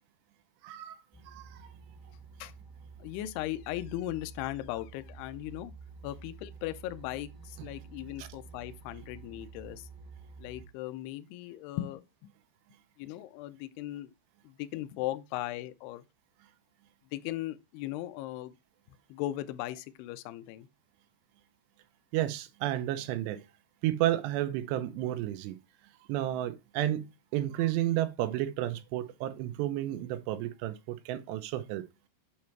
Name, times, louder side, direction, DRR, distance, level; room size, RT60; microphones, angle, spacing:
voice 1, 0.6-1.0 1.3-1.7 8.2-8.3 22.1-23.4 23.8-25.6 26.1-31.9, right 13 dB, 80° right, 2.6 m, -32 dB
sound 1, 1.1-10.7, right 4 dB, 50° right, 0.9 m, -50 dB
voice 2, 3.0-5.7 6.0-9.9 10.4-12.3 13.0-14.1 14.4-16.0 17.1-18.5 19.1-20.7, left 15 dB, 85° left, 2.3 m, -38 dB
8.4 x 3.2 x 4.5 m
omnidirectional pair, 5.3 m